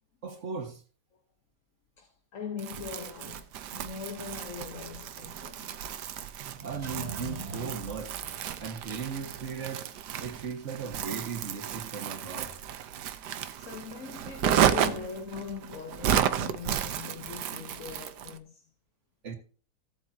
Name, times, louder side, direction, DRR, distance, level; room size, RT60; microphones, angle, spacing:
voice 1, 0.2-0.8 6.4-8.2 8.6-9.9 10.2-12.5 19.2-19.3, right 6 dB, 45° right, 1.8 m, -37 dB
voice 2, 2.0-5.7 13.6-18.7, left 6 dB, 55° left, 1.3 m, -41 dB
Crumpling crinkling, 2.6-18.4, right 10 dB, 80° right, 1.4 m, -32 dB
sound 1, 6.5-9.4 9.6-9.7, right 2 dB, 25° right, 1.1 m, -42 dB
16.0 x 7.9 x 2.8 m
omnidirectional pair, 1.8 m